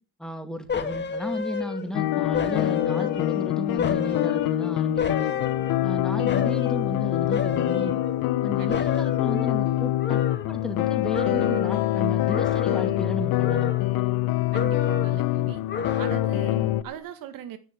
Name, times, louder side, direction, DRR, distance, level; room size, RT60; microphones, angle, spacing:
voice 1, 0.2-5.3 5.8-8.0 8.4-10.2 10.5-13.7, equal, ahead, 6 dB, 2.4 m, -34 dB
sound 1, 0.7-2.0 2.3-3.4 3.8-5.9 6.3-6.8 7.3-8.4 8.7-10.9 11.1-11.8 12.3-13.1 13.4-14.2 14.5-15.2 15.7-16.5 16.9-17.0, left 6 dB, 30° left, 2.1 m, -31 dB
sound 2, 1.9-16.8, left 15 dB, 80° left, 1.0 m, -25 dB
voice 2, 14.5-15.6 16.0-17.6, right 10 dB, 70° right, 10 dB, 1.7 m, -39 dB
11.0 x 9.5 x 8.5 m, 0.38 s
cardioid pair, 135°, 35 cm